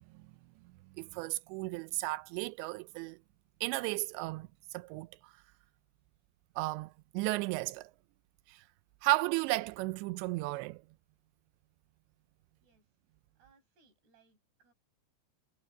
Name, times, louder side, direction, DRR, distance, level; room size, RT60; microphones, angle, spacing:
voice 1, 1.0-3.2 3.6-5.3 6.6-7.9 8.5-8.6 9.0-10.8, right 20 dB, 85° right, 2.5 m, -34 dB
voice 2, 13.3-14.7, right 5 dB, 55° right, 8.5 m, -68 dB
omnidirectional pair, 5.7 m